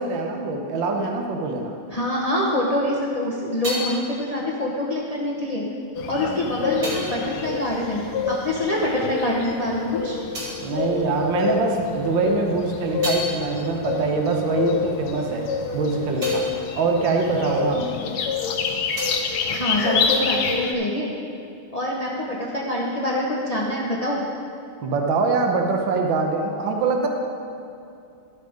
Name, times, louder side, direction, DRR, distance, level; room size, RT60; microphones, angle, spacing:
voice 1, 0.0-1.8 10.6-15.5 15.7-18.0 24.8-27.1, right 4 dB, 65° right, 2 dB, 1.6 m, -24 dB
voice 2, 1.9-5.6 6.1-10.2 19.5-21.1 21.7-24.2, left 1 dB, 70° left, -4 dB, 0.3 m, -25 dB
sound 1, 3.0-8.8 9.1-11.8 12.2-18.2 18.5-20.5, equal, 45° right, 3.2 m, -37 dB
sound 2, 5.9-20.7, left 5 dB, 90° left, 1.7 m, -27 dB
12.0 x 6.6 x 5.1 m, 2.6 s
omnidirectional pair, 2.3 m